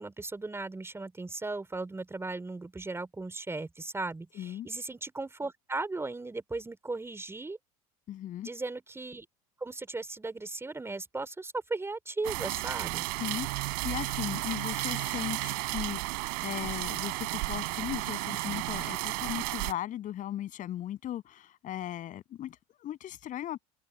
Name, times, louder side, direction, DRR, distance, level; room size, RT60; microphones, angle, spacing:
voice 1, 0.0-7.6 8.4-9.2 9.6-13.1, right 3 dB, 15° right, 4.6 m, -37 dB
voice 2, 4.3-4.7 8.1-8.5 13.2-23.7, left 12 dB, 45° left, 7.5 m, -37 dB
sound 1, 12.2-19.7, right 40 dB or more, 60° right, 3.5 m, -33 dB
open air
hypercardioid pair, 75°, 19 cm